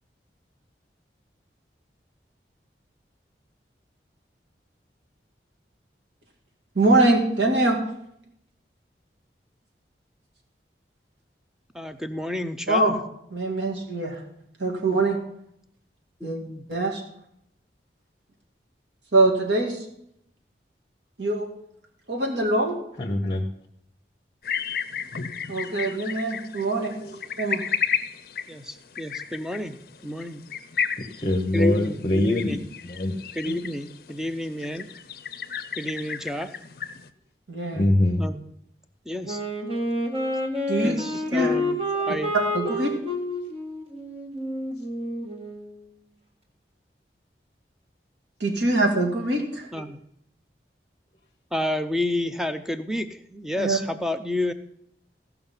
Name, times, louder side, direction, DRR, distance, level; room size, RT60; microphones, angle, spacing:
voice 1, 6.7-7.8 12.7-13.0 13.3-14.2 14.6-15.2 16.2-16.4 16.7-17.0 19.1-19.8 21.2-21.5 22.1-22.8 25.5-26.9 27.4-27.6 33.4-33.5 37.5-37.9 40.7-41.0 41.3-41.5 42.5-42.9 48.4-49.7 53.6-53.8, right 2 dB, 90° right, 1 dB, 2.4 m, -23 dB
voice 2, 11.7-12.9 14.9-15.0 16.2-16.6 28.5-29.8 30.0-30.4 31.5-32.6 33.4-34.9 35.8-36.5 38.2-38.5 39.1-39.4 40.8-41.8 42.1-42.3 49.7-50.0 51.5-54.5, left 1 dB, 5° right, 9 dB, 0.5 m, -30 dB
voice 3, 23.0-23.5 27.0-27.2 31.0-32.6 32.8-33.2 37.7-38.2 41.9-42.0 42.6-42.7, left 1 dB, 30° left, 3 dB, 0.9 m, -24 dB
sound 1, 24.4-37.1, left 7 dB, 55° left, 0.6 m, -33 dB
Wind instrument woodwind instrument, 39.2-45.8, left 1 dB, 30° right, 1.6 m, -29 dB
16.0 x 5.8 x 5.6 m, 0.75 s
head